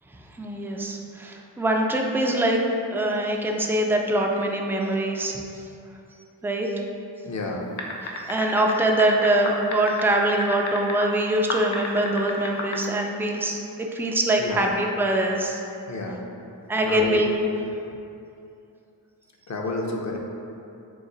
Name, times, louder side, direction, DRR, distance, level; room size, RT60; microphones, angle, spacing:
voice 1, 0.3-2.6 2.9-5.7 6.4-6.7 8.0-15.6 16.7-17.3, right 1 dB, 5° right, 1 dB, 0.3 m, -23 dB
voice 2, 7.2-7.7 14.4-14.8 15.9-16.3 16.8-17.2 19.5-20.2, left 2 dB, 40° left, 0 dB, 0.6 m, -30 dB
sound 1, 7.8-11.1 11.5-12.8, left 4 dB, 85° left, 0.6 m, -31 dB
3.9 x 2.5 x 3.8 m, 2.7 s
cardioid pair, 50°, 46 cm